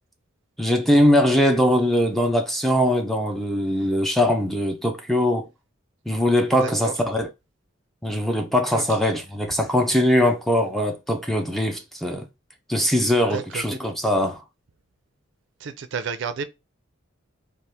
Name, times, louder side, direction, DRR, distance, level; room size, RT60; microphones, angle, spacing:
voice 1, 0.6-5.5 6.1-7.3 8.0-12.2 12.7-14.4, left 1 dB, ahead, 0.4 m, -21 dB
voice 2, 6.6-6.9 8.7-8.8 13.3-13.6 15.6-16.4, right 5 dB, 65° right, 0.4 m, -31 dB
3.4 x 2.4 x 2.8 m
head